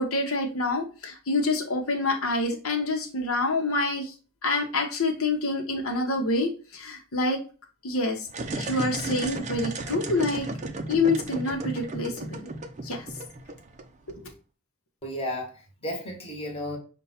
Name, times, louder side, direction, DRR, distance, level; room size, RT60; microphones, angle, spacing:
voice 1, 0.0-4.1 4.4-7.4 7.8-8.3 8.5-10.5 10.9-12.5 12.8-13.0 14.1-14.3, left 2 dB, 80° left, 0.9 m, -27 dB
sound 1, 8.3-14.1, right 2 dB, 35° right, 0.5 m, -34 dB
voice 2, 15.0-16.8, left 1 dB, 25° left, 1.3 m, -33 dB
5.4 x 2.2 x 4.1 m
head